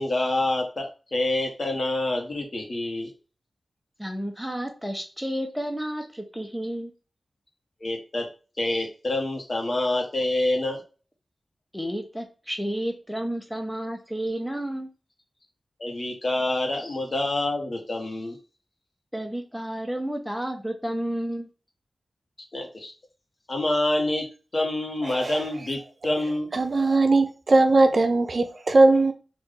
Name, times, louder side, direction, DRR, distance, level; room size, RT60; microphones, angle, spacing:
voice 1, 0.0-3.1 7.8-8.3 8.6-10.8 15.8-18.4 22.5-22.9 23.5-24.3 24.5-26.5, left 2 dB, 50° left, 1.2 m, -27 dB
voice 2, 4.0-6.9 11.7-14.9 19.1-21.5, right 1 dB, ahead, 1.0 m, -31 dB
voice 3, 25.1-25.4 26.5-29.1, right 2 dB, 55° right, 0.6 m, -19 dB
3.4 x 2.6 x 3.9 m
wide cardioid pair, 65°, 0 cm